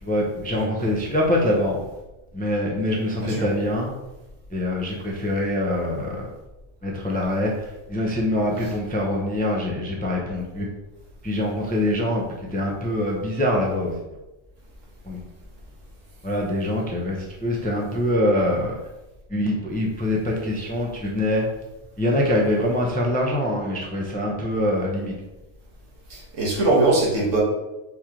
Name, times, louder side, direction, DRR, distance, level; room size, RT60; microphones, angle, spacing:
voice 1, 0.0-1.8 2.3-3.9 4.5-6.2 6.8-10.7 11.2-13.9 15.0-15.2 16.2-18.7 19.3-21.5 22.0-25.1, left 1 dB, 15° left, -1 dB, 0.3 m, -24 dB
voice 2, 0.5-0.9 3.2-3.5 26.1-27.4, right 2 dB, 85° right, -3 dB, 1.5 m, -22 dB
4.6 x 3.0 x 3.6 m, 1.0 s
omnidirectional pair, 1.3 m